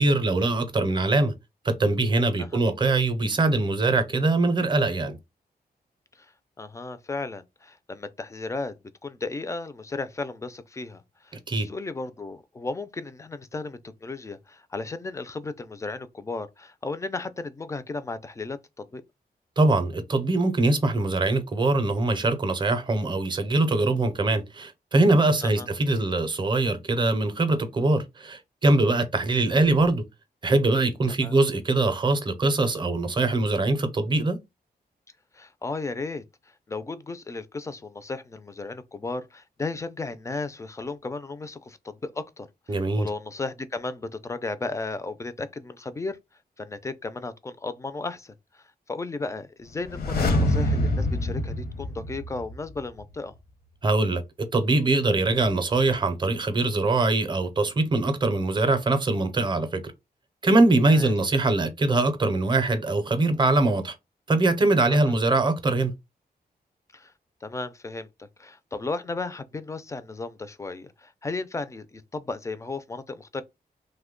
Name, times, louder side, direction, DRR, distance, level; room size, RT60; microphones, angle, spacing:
voice 1, 0.0-1.3 1.6-5.2 11.5-11.7 19.6-30.0 30.4-34.4 42.7-43.1 53.8-59.8 60.4-63.9 64.3-65.9, right 2 dB, 30° right, 0.5 m, -22 dB
voice 2, 6.6-8.8 9.0-19.0 25.4-25.7 31.2-31.4 35.3-36.2 36.7-46.2 46.6-53.3 60.9-61.1 64.9-65.1 66.9-67.1 67.4-73.4, left 3 dB, 20° left, 0.3 m, -35 dB
sound 1, 49.8-52.7 53.0-53.1, left 1 dB, 75° left, 0.7 m, -25 dB
3.0 x 2.1 x 3.6 m
wide cardioid pair, 145°, 16 cm